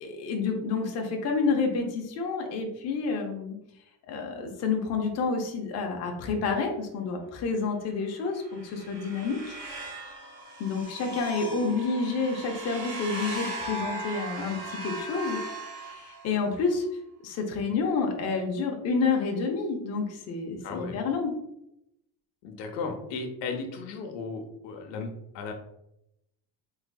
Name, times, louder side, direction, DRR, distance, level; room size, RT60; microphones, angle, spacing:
voice 1, 0.0-3.6 4.1-9.6 10.6-15.4 15.8-16.8 17.2-21.3, left 4 dB, 40° left, 2 dB, 0.5 m, -29 dB
sound 1, 8.3-16.6, right 1 dB, 55° right, 1.2 m, -38 dB
voice 2, 20.6-21.0 22.4-25.5, left 4 dB, 90° left, 4 dB, 0.8 m, -35 dB
3.7 x 3.2 x 2.2 m, 0.81 s
cardioid pair, 175°, 42 cm